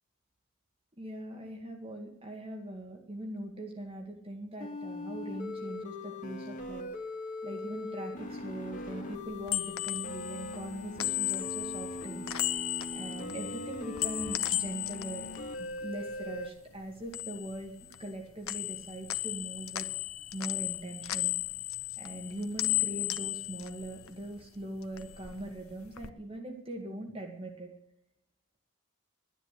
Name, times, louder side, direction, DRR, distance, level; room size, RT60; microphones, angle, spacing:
voice 1, 1.0-7.1 7.4-15.3 15.6-19.9 20.3-21.3 22.0-27.7, right 1 dB, 25° right, 2 dB, 2.0 m, -41 dB
sound 1, 4.6-16.5, left 2 dB, 40° left, 2.2 m, -41 dB
Bell Ring.R, 9.2-16.5 16.8-18.2 18.5-24.5 24.8-26.1, left 15 dB, 85° left, 0.8 m, -35 dB
12.5 x 10.5 x 8.4 m, 0.73 s
head